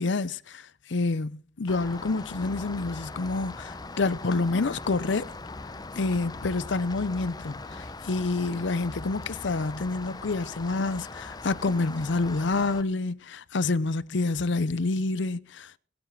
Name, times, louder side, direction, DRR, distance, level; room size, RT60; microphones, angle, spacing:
voice 1, 0.0-1.3 1.6-5.3 6.0-15.8, left 3 dB, 65° left, 0.6 m, -28 dB
Rain, 1.7-12.8, left 3 dB, 20° left, 0.6 m, -40 dB
20.0 x 7.3 x 5.9 m
head